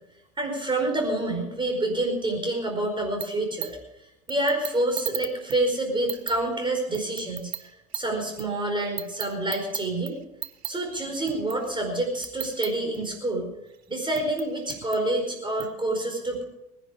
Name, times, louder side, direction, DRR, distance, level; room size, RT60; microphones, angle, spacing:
voice 1, 0.4-3.7 4.3-10.2 10.6-13.5 13.9-16.4, right 1 dB, 10° right, 3 dB, 4.9 m, -27 dB
sound 1, 3.2-3.7 4.3-5.6 6.1-8.4 9.0-11.7 12.2-13.1 14.0-15.7, right 14 dB, 40° right, 1.0 m, -35 dB
19.5 x 11.0 x 5.0 m, 0.91 s
hypercardioid pair, 85°, 39 cm